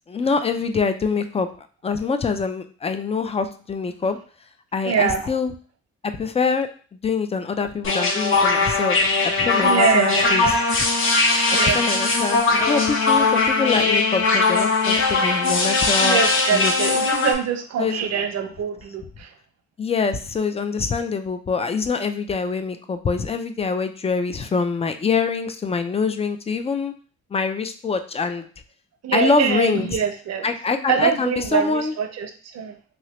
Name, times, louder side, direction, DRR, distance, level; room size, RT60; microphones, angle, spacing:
voice 1, 0.1-1.5 1.8-4.2 4.7-5.5 6.0-6.7 7.0-10.6 11.7-16.2 16.5-16.7 17.8-18.1 19.8-26.9 27.3-28.5 29.1-29.9 30.4-31.9, left 4 dB, 20° left, 8 dB, 0.3 m, -24 dB
voice 2, 4.8-5.3 9.6-10.5 11.5-11.9 16.0-19.3 29.0-30.4 30.9-32.8, right 7 dB, 60° right, 7 dB, 0.6 m, -24 dB
sound 1, 7.8-17.3, left 3 dB, 45° left, 0.7 m, -20 dB
3.0 x 2.8 x 3.0 m, 0.41 s
cardioid pair, 90°, 30 cm